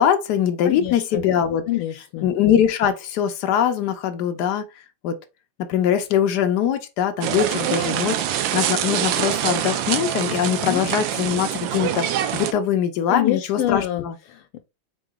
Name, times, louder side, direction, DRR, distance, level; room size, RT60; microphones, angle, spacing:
voice 1, 0.0-1.6 2.2-4.6 5.0-5.2 5.7-14.1, left 9 dB, 75° left, 0.9 m, -22 dB
voice 2, 0.6-1.3 1.7-2.3 10.6-10.9 13.1-14.6, left 13 dB, 90° left, 1.5 m, -26 dB
sound 1, 7.2-12.5, right 10 dB, 75° right, 1.2 m, -25 dB
4.0 x 3.7 x 3.5 m
omnidirectional pair, 2.4 m